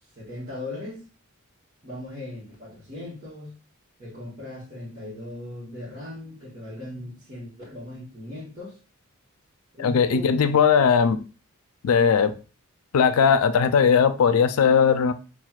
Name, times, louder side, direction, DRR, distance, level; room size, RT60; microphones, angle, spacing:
voice 1, 0.1-1.0 1.8-3.6 4.0-8.8 9.7-10.5 12.1-12.3, left 1 dB, 35° right, 1.2 m, -38 dB
voice 2, 9.8-11.2 11.8-12.3 12.9-15.1, left 6 dB, 85° left, 0.4 m, -19 dB
5.8 x 2.4 x 2.3 m
head